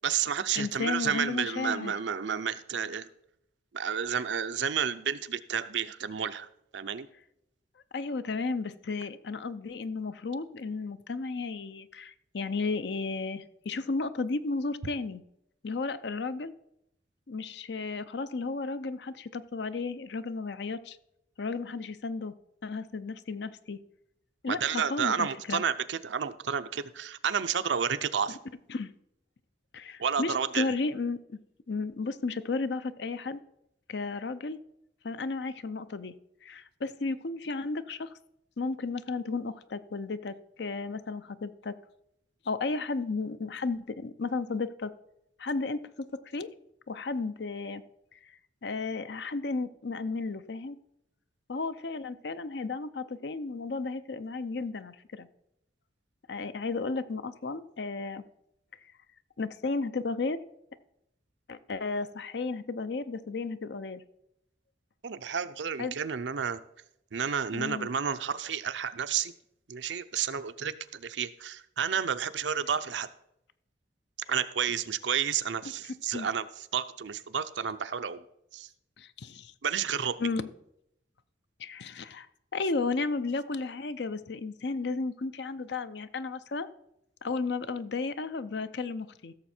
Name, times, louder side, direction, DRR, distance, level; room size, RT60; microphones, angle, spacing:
voice 1, 0.0-3.1 3.7-6.5 6.7-7.1 24.5-28.4 30.0-30.7 65.0-66.6 67.1-69.3 69.7-73.1 74.3-78.2 78.5-78.7 79.6-80.2, right 7 dB, 75° right, 12 dB, 0.6 m, -31 dB
voice 2, 0.6-1.9 7.9-15.2 15.6-16.5 17.3-21.0 21.4-22.3 22.6-23.8 24.4-25.6 28.7-28.9 29.7-31.4 31.7-33.4 33.9-34.6 35.0-36.1 36.4-38.1 38.6-41.7 42.5-44.9 45.4-46.5 46.9-47.8 48.6-50.8 51.5-55.3 56.3-58.2 59.4-60.4 61.5-64.0 65.8-66.0 67.5-67.9 75.8-76.3 79.0-79.5 80.2-80.5 81.6-82.3 82.5-86.7 87.2-89.3, left 3 dB, 65° left, 13 dB, 0.6 m, -33 dB
15.5 x 7.0 x 4.4 m, 0.80 s
head